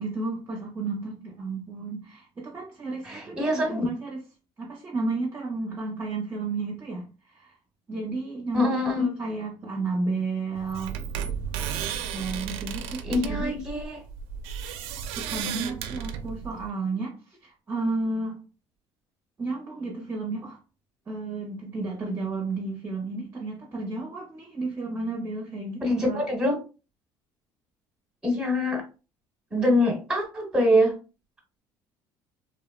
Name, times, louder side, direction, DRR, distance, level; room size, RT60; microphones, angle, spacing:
voice 1, 0.0-4.2 4.6-7.5 7.9-10.9 12.1-13.5 15.1-18.4 19.4-20.6 21.1-26.2, right 3 dB, 25° right, 0.6 m, -32 dB
voice 2, 3.0-3.9 8.5-9.1 13.0-14.0 25.8-26.6 28.2-28.8 29.5-30.9, left 1 dB, 10° right, 1.0 m, -24 dB
sound 1, 10.6-16.7, right 8 dB, 85° right, 0.4 m, -34 dB
3.0 x 2.0 x 2.3 m
cardioid pair, 135°, 10 cm